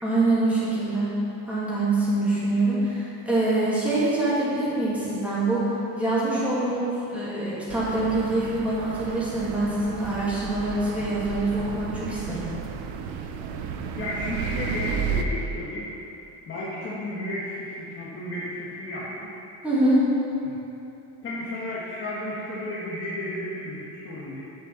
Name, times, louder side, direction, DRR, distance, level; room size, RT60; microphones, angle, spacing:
voice 1, 0.0-1.1 1.5-12.5 19.6-20.0, right 2 dB, 5° right, -10 dB, 2.6 m, -25 dB
sound 1, 7.7-15.2, right 7 dB, 75° right, 0.9 m, -33 dB
voice 2, 14.0-15.9 16.5-19.3 20.4-20.6 21.2-24.4, left 1 dB, 25° left, -8 dB, 1.4 m, -33 dB
10.5 x 5.5 x 7.2 m, 2.9 s
cardioid pair, 170°, 46 cm